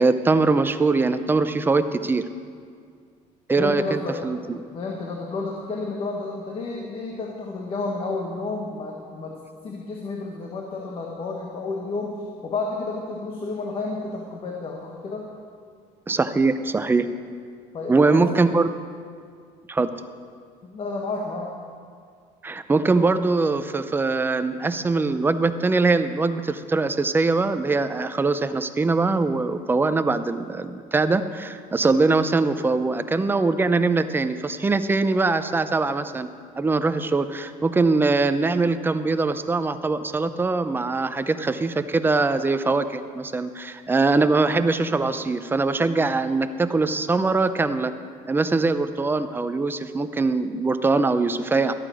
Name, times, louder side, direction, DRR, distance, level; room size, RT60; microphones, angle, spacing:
voice 1, 0.0-2.2 3.5-4.6 16.1-17.0 17.9-18.7 19.7-19.9 22.4-36.3 36.6-47.9 48.3-51.7, right 3 dB, 15° right, 10 dB, 0.6 m, -22 dB
voice 2, 3.6-4.2 4.7-9.4 9.6-12.2 12.4-15.3 17.7-18.5 20.6-21.5, left 3 dB, 40° left, 0 dB, 1.5 m, -31 dB
13.5 x 8.8 x 6.4 m, 2.1 s
cardioid pair, 120°, 14 cm